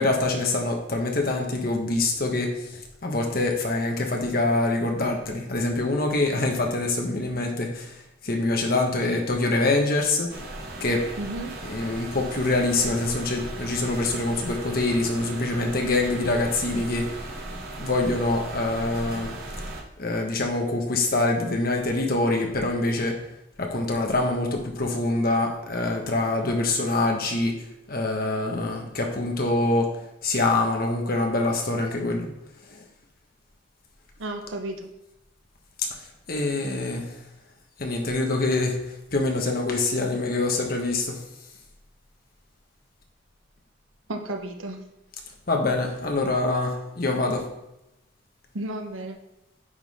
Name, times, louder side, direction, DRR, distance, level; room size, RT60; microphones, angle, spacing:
voice 1, 0.0-10.3 10.8-11.1 11.6-17.2 17.7-19.3 20.0-23.2 23.6-32.3 32.7-32.8 36.3-37.2 37.8-41.2 45.5-47.5, left 2 dB, 45° left, 2 dB, 1.1 m, -25 dB
sound 1, 10.3-19.8, right 2 dB, 50° right, 1.1 m, -37 dB
voice 2, 11.2-11.6 34.2-34.9 44.1-44.8 48.5-49.2, right 1 dB, 80° right, 4 dB, 0.9 m, -33 dB
9.9 x 3.8 x 4.1 m, 0.90 s
head